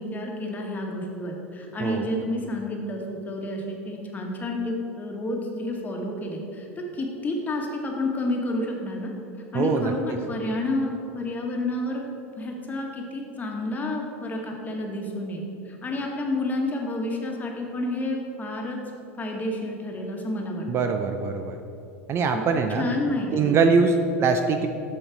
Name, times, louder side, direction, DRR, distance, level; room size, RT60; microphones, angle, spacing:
voice 1, 0.0-9.1 9.5-12.0 12.4-18.8 19.2-20.9 22.3-24.1, left 1 dB, 20° left, 1 dB, 1.5 m, -30 dB
voice 2, 9.5-9.9 20.7-21.6 22.1-22.9 23.3-24.7, right 4 dB, 35° right, 6 dB, 0.6 m, -22 dB
7.7 x 6.5 x 4.6 m, 2.7 s
hypercardioid pair, 95°, 7 cm